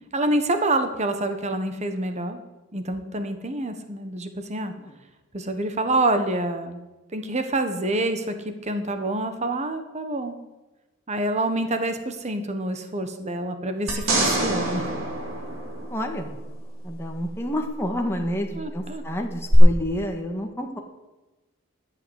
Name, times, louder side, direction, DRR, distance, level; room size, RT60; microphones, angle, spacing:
voice 1, 0.1-2.4 2.7-4.7 5.3-6.8 7.1-8.3 8.6-10.4 11.1-14.9 18.6-19.0, right 2 dB, 35° right, 8 dB, 1.3 m, -27 dB
sound 1, 13.9-16.4 19.5-19.6, right 2 dB, 80° right, 3.1 m, -26 dB
voice 2, 15.9-16.3 16.8-20.8, left 1 dB, 10° left, 2 dB, 1.6 m, -29 dB
12.0 x 8.2 x 8.2 m, 1.1 s
head